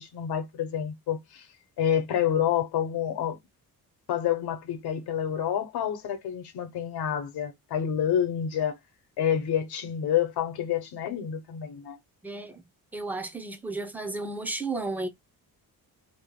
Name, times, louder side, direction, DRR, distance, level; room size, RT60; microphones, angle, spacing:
voice 1, 0.0-1.5 1.8-3.4 4.1-8.8 9.2-12.0, left 9 dB, 85° left, 0.9 m, -28 dB
voice 2, 12.2-12.6 12.9-15.1, right 2 dB, 5° right, 0.4 m, -33 dB
2.8 x 2.2 x 3.5 m
wide cardioid pair, 170°, 38 cm